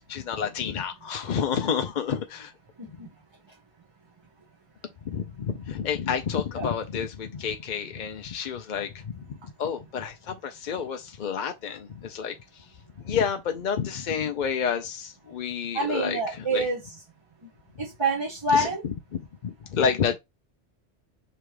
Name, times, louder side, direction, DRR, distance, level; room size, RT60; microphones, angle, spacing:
voice 1, 0.1-2.5 5.0-9.2 9.6-12.6 13.0-16.6 18.5-18.7 19.1-20.2, left 7 dB, 55° left, 0.6 m, -29 dB
voice 2, 2.8-3.1 6.6-6.7 15.7-16.8 17.8-18.8, right 1 dB, 25° right, 1.0 m, -26 dB
3.5 x 3.0 x 4.7 m
omnidirectional pair, 1.2 m